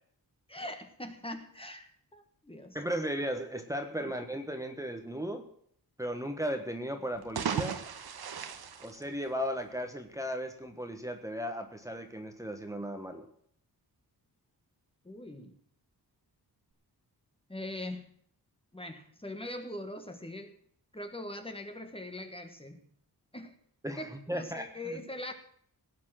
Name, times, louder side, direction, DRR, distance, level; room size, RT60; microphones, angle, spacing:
voice 1, 0.5-2.8 4.0-4.1 15.0-15.5 17.5-18.1 18.7-20.5 20.9-22.8 23.3-23.5 24.0-25.3, left 1 dB, 15° left, 6 dB, 1.5 m, -42 dB
voice 2, 2.7-5.4 6.0-7.8 8.8-13.3 23.8-25.0, equal, 10° right, 5 dB, 1.3 m, -36 dB
sound 1, 7.1-9.7, right 7 dB, 70° right, 1.3 m, -36 dB
17.5 x 8.5 x 6.3 m, 0.62 s
wide cardioid pair, 130°, 39 cm